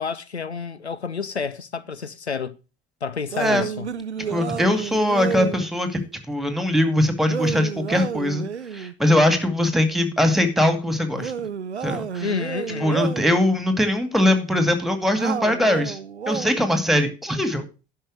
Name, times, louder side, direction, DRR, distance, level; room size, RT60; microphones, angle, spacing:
voice 1, 0.0-2.6 3.0-3.9 12.2-13.0, left 5 dB, 85° left, 0.6 m, -29 dB
sound 1, 3.3-5.7 7.3-8.9 11.1-13.4 15.2-16.7, right 7 dB, 90° right, 0.5 m, -30 dB
voice 2, 4.3-6.0 6.3-8.5 8.7-11.3 11.8-12.3 12.8-16.0 16.3-17.6, left 1 dB, ahead, 2.2 m, -21 dB
11.5 x 5.8 x 6.2 m
figure-of-eight pair, 65°, 32 cm